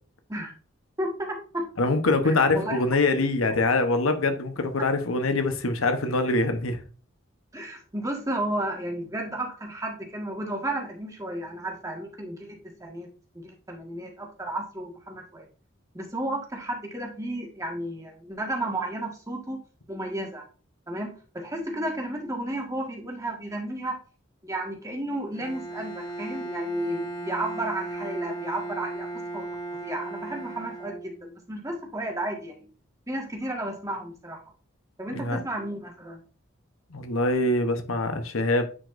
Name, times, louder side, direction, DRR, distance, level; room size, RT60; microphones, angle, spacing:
voice 1, 1.0-1.7 2.2-2.8 3.1-3.2 7.5-13.1 13.3-15.5 15.9-19.6 19.9-20.4 20.9-24.0 24.4-32.7 33.1-34.4 35.0-36.2, right 1 dB, 15° right, 1.7 m, -33 dB
voice 2, 1.8-6.8 35.1-35.4 36.9-38.6, left 2 dB, 85° left, 1.0 m, -24 dB
Bowed string instrument, 25.3-31.5, right 2 dB, 35° left, 3.6 m, -36 dB
9.7 x 5.0 x 2.6 m
head